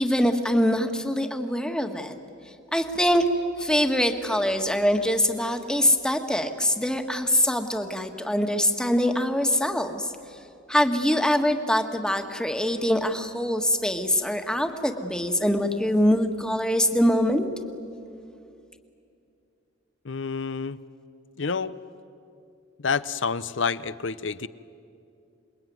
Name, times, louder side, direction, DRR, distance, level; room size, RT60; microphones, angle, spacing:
voice 1, 0.0-2.1 2.7-3.2 3.6-10.1 10.7-17.5, equal, 5° left, 5 dB, 1.5 m, -23 dB
voice 2, 20.0-20.8 21.4-21.7 22.8-24.5, left 5 dB, 70° left, 15 dB, 0.7 m, -28 dB
27.5 x 21.5 x 9.4 m, 2.5 s
head